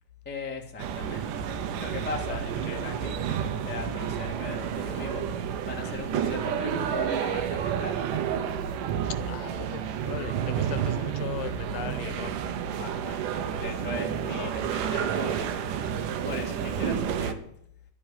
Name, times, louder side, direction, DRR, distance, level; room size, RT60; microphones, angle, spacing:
voice 1, 0.2-8.2 12.7-15.7 16.2-17.4, left 4 dB, 15° left, 0 dB, 0.4 m, -39 dB
sound 1, 0.8-17.3, right 8 dB, 80° right, 2.4 m, -30 dB
voice 2, 2.3-2.8 5.8-6.0 9.1-12.3 14.4-14.5, left 13 dB, 80° left, 12 dB, 2.4 m, -39 dB
12.0 x 7.7 x 9.2 m, 0.70 s
omnidirectional pair, 3.9 m